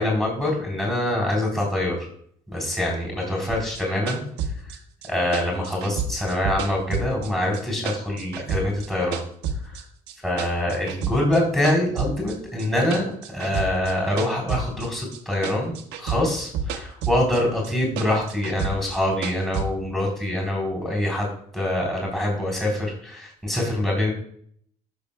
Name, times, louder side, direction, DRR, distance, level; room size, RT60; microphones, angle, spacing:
voice 1, 0.0-2.1 2.5-4.2 4.6-4.8 5.1-9.2 9.6-9.8 10.2-21.3 21.5-24.1, left 1 dB, ahead, -2 dB, 3.7 m, -25 dB
sound 1, 3.5-7.6 7.9-9.8 10.1-11.4 11.6-15.2 15.4-17.4 17.6-19.7, right 5 dB, 85° right, 1.3 m, -30 dB
17.0 x 6.4 x 2.3 m, 0.62 s
cardioid pair, 110°, 17 cm